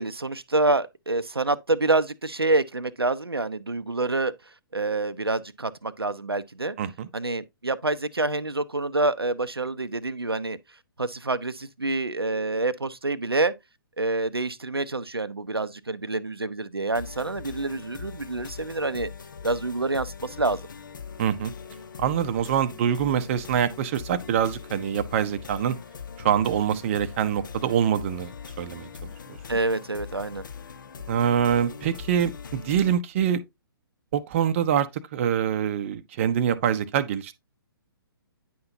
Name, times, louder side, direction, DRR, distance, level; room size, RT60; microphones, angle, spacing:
voice 1, 0.0-4.3 4.7-6.8 7.1-10.6 11.0-13.5 14.0-19.1 19.4-20.6 29.5-30.4, right 2 dB, 85° right, 0.6 m, -27 dB
voice 2, 6.8-7.1 21.2-21.5 22.0-25.8 26.2-28.3 28.6-28.9 31.1-33.4 34.1-34.9 35.1-37.3, right 9 dB, 35° right, 0.6 m, -24 dB
sound 1, 16.9-32.9, left 6 dB, 55° left, 0.7 m, -41 dB
9.4 x 5.7 x 2.7 m
figure-of-eight pair, 125°, 12 cm